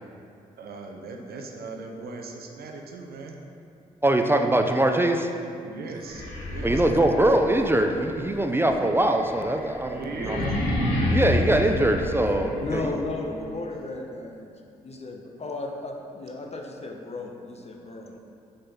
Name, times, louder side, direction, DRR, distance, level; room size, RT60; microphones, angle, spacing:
voice 1, 0.6-3.4 5.6-7.4 9.9-10.5 12.3-13.6, right 3 dB, 65° right, 2 dB, 0.8 m, -38 dB
voice 2, 4.0-5.3 6.6-10.4 11.1-12.9, right 1 dB, 15° right, 4 dB, 0.6 m, -22 dB
sound 1, 6.0-12.9, left 1 dB, 80° left, 1.1 m, -29 dB
voice 3, 12.6-14.5 14.8-18.2, left 3 dB, 35° left, 2 dB, 0.9 m, -35 dB
5.1 x 4.3 x 5.5 m, 2.4 s
hypercardioid pair, 40°, 18 cm